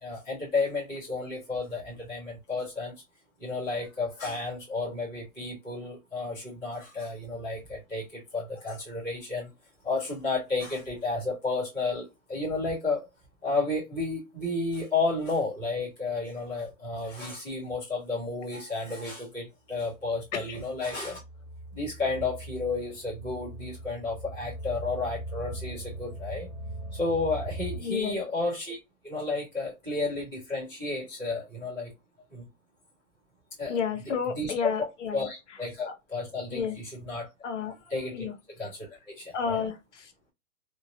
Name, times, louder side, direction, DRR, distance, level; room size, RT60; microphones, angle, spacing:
voice 1, 0.0-2.9 3.4-9.5 9.8-13.1 13.4-21.2 21.7-26.5 26.9-28.8 29.0-31.9 32.3-32.5 33.6-33.8 34.3-34.9 35.1-37.3 37.6-38.3 38.6-39.7, left 3 dB, 5° left, 0.5 m, -32 dB
sound 1, 20.3-27.8, right 1 dB, 35° left, 1.4 m, -40 dB
voice 2, 27.8-28.2 33.7-35.3 35.9-36.0 36.5-36.8 37.4-37.8 38.1-38.3 39.3-40.3, left 6 dB, 55° left, 0.8 m, -31 dB
2.8 x 2.6 x 2.5 m
hypercardioid pair, 170°, 42 cm